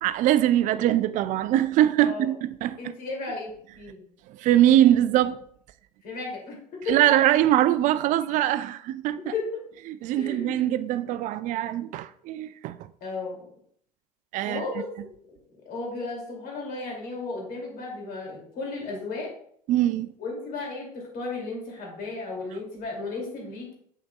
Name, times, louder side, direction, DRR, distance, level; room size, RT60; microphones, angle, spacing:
voice 1, 0.0-2.9 4.3-5.4 6.9-9.2 9.9-12.9 14.3-14.6 19.7-20.1, right 12 dB, 40° right, 0.4 m, -22 dB
voice 2, 2.0-2.3 2.8-4.0 6.0-7.0 9.2-9.6 10.1-10.8 11.0-11.2 13.0-13.5 14.4-14.9 15.7-19.3 20.2-23.7, left 3 dB, 45° left, 2.5 m, -34 dB
7.6 x 5.8 x 2.3 m
figure-of-eight pair, 70°, 20 cm